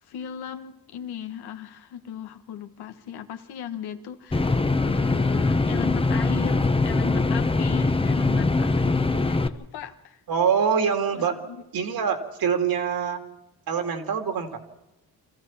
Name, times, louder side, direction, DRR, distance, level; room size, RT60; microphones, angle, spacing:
voice 1, 0.0-10.2 11.1-11.6, left 9 dB, 80° left, 8 dB, 1.6 m, -37 dB
sound 1, 4.3-9.5, left 3 dB, 15° left, 1.0 m, -22 dB
voice 2, 10.3-11.3 11.7-13.2 13.7-14.5, right 7 dB, 65° right, 6 dB, 2.7 m, -24 dB
25.0 x 14.5 x 7.4 m, 0.92 s
supercardioid pair, 70°, 38 cm